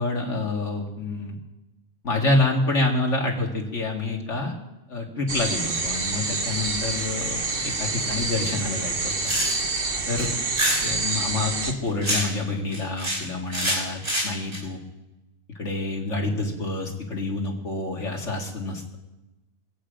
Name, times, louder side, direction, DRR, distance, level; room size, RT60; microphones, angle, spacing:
voice 1, 0.0-1.4 2.0-4.5 4.9-9.1 10.1-10.4 10.8-14.8 15.6-19.0, left 2 dB, 65° left, 0 dB, 2.5 m, -27 dB
sound 1, 5.3-11.7, right 3 dB, 45° right, 1.4 m, -27 dB
sound 2, 9.0-9.8 10.2-10.8 11.6-12.4 12.7-13.2 13.5-14.6, right 1 dB, 80° right, 5.8 m, -26 dB
23.5 x 8.7 x 5.1 m, 1.0 s
omnidirectional pair, 1.4 m